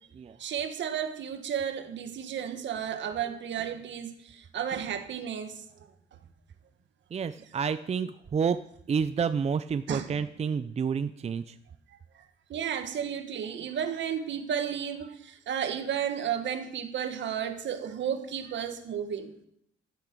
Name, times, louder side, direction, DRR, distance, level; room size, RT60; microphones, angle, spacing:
voice 1, 0.4-5.9 9.9-10.0 12.1-12.2 12.5-19.3, right 8 dB, 65° right, 8 dB, 1.6 m, -33 dB
voice 2, 7.1-8.6 8.9-11.6, right 6 dB, 35° right, 12 dB, 0.5 m, -29 dB
12.5 x 8.7 x 6.1 m, 0.71 s
cardioid pair, 90°, 20 cm